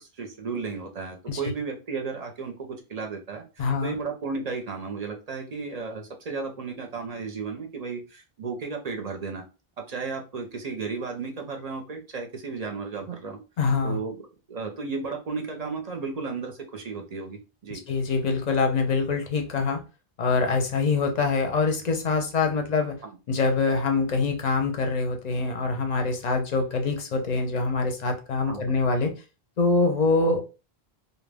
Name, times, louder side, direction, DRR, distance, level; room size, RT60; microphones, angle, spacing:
voice 1, 0.0-9.4 9.8-13.4 13.8-14.2 14.5-17.8 23.0-23.1 28.5-28.9, right 4 dB, 50° right, 0.5 m, -34 dB
voice 2, 3.6-3.9 13.6-14.0 17.7-19.8 20.2-23.0 23.3-29.2 29.6-30.4, left 4 dB, 50° left, 0.5 m, -24 dB
2.2 x 2.1 x 3.3 m
omnidirectional pair, 1.0 m